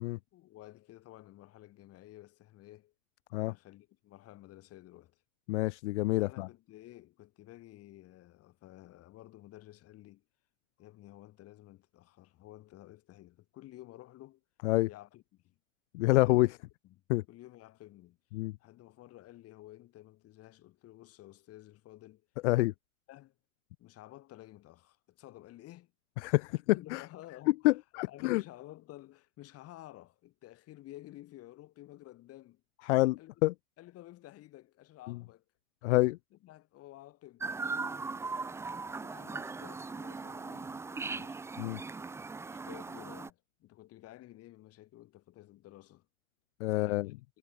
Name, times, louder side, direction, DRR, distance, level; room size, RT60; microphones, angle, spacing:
voice 1, 0.3-2.9 3.4-5.2 6.2-10.2 10.8-14.4 14.9-15.6 16.1-16.5 16.8-17.0 17.3-18.2 18.6-22.3 23.1-23.3 23.8-25.9 26.5-27.7 28.0-32.6 33.2-33.3 33.8-35.4 35.8-35.9 36.4-37.6 38.8-41.4 42.4-46.1 46.7-47.1, left 16 dB, 35° left, 5.5 m, -53 dB
voice 2, 5.5-6.5 14.6-14.9 15.9-16.5 17.1-17.2 18.3-18.6 22.4-22.7 26.2-27.0 27.6-28.4 32.9-33.5 35.1-35.2 35.8-36.2 41.6-41.8 46.6-47.1, left 20 dB, 55° left, 0.8 m, -27 dB
Chirp tweet, 37.4-43.3, right 4 dB, 5° right, 0.7 m, -39 dB
hypercardioid pair, 125°, 41 cm